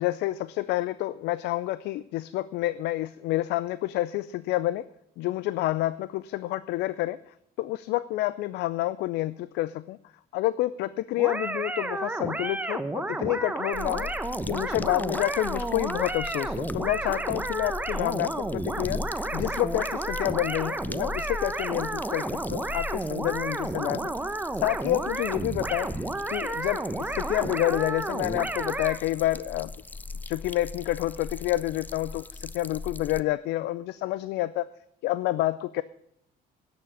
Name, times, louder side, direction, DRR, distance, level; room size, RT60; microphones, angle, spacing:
voice 1, 0.0-4.9 5.2-10.0 10.3-14.1 14.5-25.9 26.3-29.7 30.3-34.7 35.0-35.8, left 16 dB, 85° left, 16 dB, 0.4 m, -29 dB
sound 1, 11.2-29.0, right 2 dB, 10° right, 0.9 m, -31 dB
sound 2, 13.7-33.2, left 3 dB, 10° left, 0.4 m, -40 dB
10.5 x 6.8 x 8.8 m, 0.74 s
cardioid pair, 110°, 17 cm